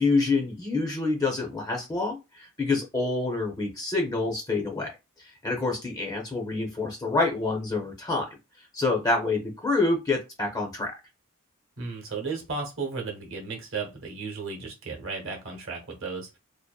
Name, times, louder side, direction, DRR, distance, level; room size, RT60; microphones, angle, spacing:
voice 1, 0.0-4.9 5.2-8.3 8.7-10.9, left 3 dB, 15° left, 0.5 m, -27 dB
voice 2, 11.8-16.4, right 4 dB, 60° right, 0.8 m, -34 dB
2.6 x 2.1 x 2.3 m
head